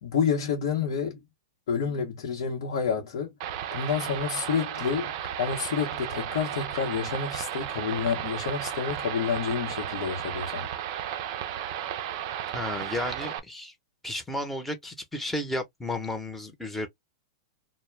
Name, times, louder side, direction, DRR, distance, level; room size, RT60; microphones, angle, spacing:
voice 1, 0.0-1.2 1.7-3.3 3.7-5.1 5.4-10.7, left 6 dB, 70° left, 0.8 m, -29 dB
sound 1, 3.4-13.4, right 10 dB, 55° right, 0.4 m, -34 dB
voice 2, 12.5-13.7 14.0-16.9, left 1 dB, 5° left, 0.8 m, -33 dB
2.2 x 2.1 x 3.2 m
hypercardioid pair, 120°, 3 cm